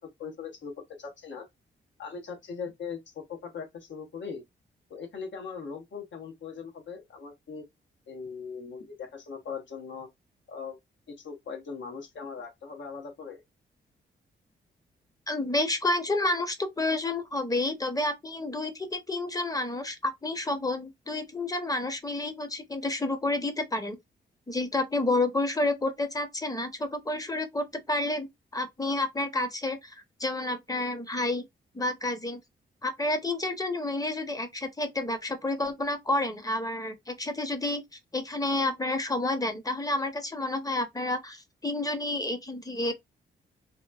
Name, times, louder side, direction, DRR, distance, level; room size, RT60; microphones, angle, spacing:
voice 1, 0.2-1.5 2.0-4.4 4.9-7.6 8.1-10.1 10.5-10.8 11.1-13.4, left 5 dB, 70° left, 0.9 m, -40 dB
voice 2, 15.3-24.0 24.5-28.3 28.5-29.9 30.2-31.4 31.7-32.4 32.8-37.8 38.1-42.9, left 2 dB, 20° left, 0.8 m, -30 dB
2.9 x 2.1 x 2.3 m
cardioid pair, 65°, 20 cm